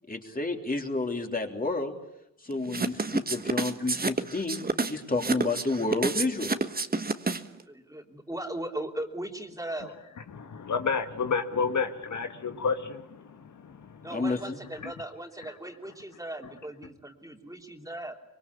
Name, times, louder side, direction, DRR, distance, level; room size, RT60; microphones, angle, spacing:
voice 1, 0.1-1.9 2.4-4.6 4.9-6.5 14.1-14.6, left 3 dB, 30° left, 3.4 m, -30 dB
sound 1, 2.7-7.6, right 3 dB, 30° right, 1.4 m, -29 dB
voice 2, 7.7-9.9 14.0-18.1, right 1 dB, 10° right, 3.1 m, -38 dB
voice 3, 10.3-14.1 14.8-14.9, left 5 dB, 80° left, 1.7 m, -31 dB
24.5 x 23.5 x 8.5 m
cardioid pair, 80°, 29 cm